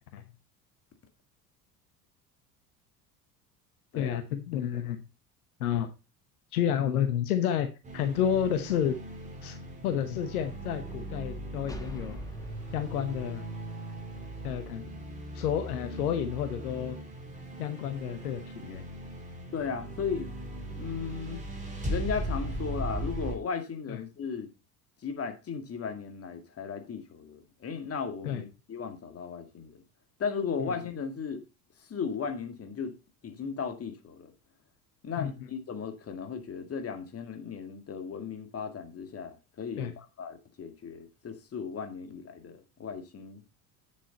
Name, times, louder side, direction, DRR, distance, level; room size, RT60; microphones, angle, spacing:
voice 1, 3.9-5.0 5.6-5.9 6.5-9.0 9.4-9.6 9.8-12.2 12.7-13.4 14.4-14.9 15.3-17.0 17.6-18.8 23.9-24.0 28.2-28.4 35.2-35.3 39.8-39.9, left 9 dB, 70° left, 1.1 m, -30 dB
sound 1, 7.8-23.3, right 1 dB, 15° right, 3.8 m, -38 dB
sound 2, 11.7-15.2, left 1 dB, 10° left, 1.4 m, -47 dB
voice 2, 19.5-20.3 20.8-21.4 21.9-24.5 25.0-29.8 30.2-31.4 31.8-33.0 33.2-34.3 35.0-43.4, left 6 dB, 30° left, 2.1 m, -36 dB
8.6 x 7.5 x 4.0 m
figure-of-eight pair, 65°, 45 cm